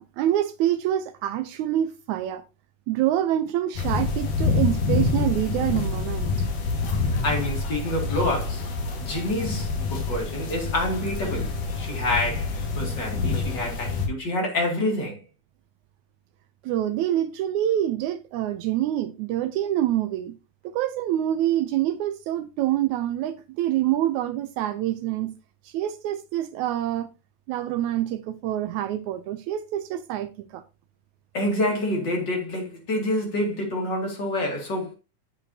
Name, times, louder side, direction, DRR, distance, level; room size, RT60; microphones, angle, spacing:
voice 1, 0.0-2.4 2.9-6.5 16.6-20.4 20.6-25.3 25.7-27.1 27.5-30.6, right 12 dB, 75° right, 1.9 m, -26 dB
sound 1, 3.7-14.1, left 4 dB, 80° left, 3.3 m, -27 dB
voice 2, 7.2-8.7 9.0-15.2 31.3-34.9, left 1 dB, 35° left, 2.7 m, -27 dB
10.0 x 6.9 x 2.8 m
omnidirectional pair, 3.6 m